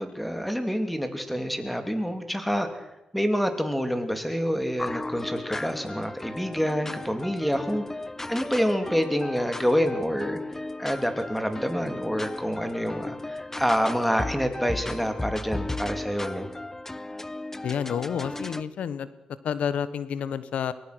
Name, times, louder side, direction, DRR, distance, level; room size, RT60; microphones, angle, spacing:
voice 1, 0.0-2.7 3.1-7.8 8.3-16.5, equal, ahead, 7 dB, 3.3 m, -27 dB
sound 1, 4.8-18.6, left 2 dB, 20° left, 0.9 m, -35 dB
voice 2, 17.6-19.1 19.4-20.7, left 8 dB, 80° left, 15 dB, 1.1 m, -29 dB
23.0 x 18.5 x 6.3 m, 0.92 s
cardioid pair, 60°, 2 cm